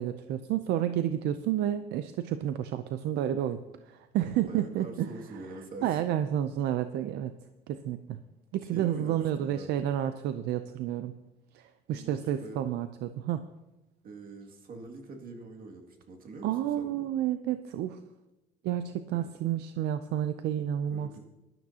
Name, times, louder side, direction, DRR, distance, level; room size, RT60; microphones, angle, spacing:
voice 1, 0.0-5.1 5.8-7.3 7.7-8.2 8.5-11.1 11.5-13.5 16.4-18.0 18.6-21.1, right 11 dB, 80° right, 10 dB, 0.5 m, -30 dB
voice 2, 4.5-6.0 8.6-9.8 11.9-12.6 14.0-17.1 19.1-19.3 20.9-21.2, right 3 dB, 60° right, 2 dB, 2.3 m, -44 dB
19.0 x 12.0 x 2.9 m, 1.0 s
cardioid pair, 110°, 17 cm